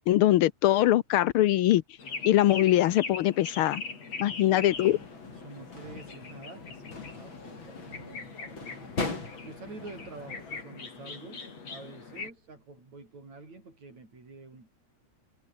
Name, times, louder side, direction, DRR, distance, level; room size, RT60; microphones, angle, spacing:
voice 1, 0.1-1.8 2.2-3.8 4.2-5.0, left 14 dB, 80° left, 1.2 m, -22 dB
sound 1, 2.0-12.3, left 4 dB, 60° left, 5.8 m, -41 dB
voice 2, 4.2-4.8 5.3-11.4 11.7-14.7, right 3 dB, 70° right, 9.2 m, -48 dB
sound 2, 4.7-10.6, left 3 dB, 40° left, 5.8 m, -40 dB
omnidirectional pair, 3.4 m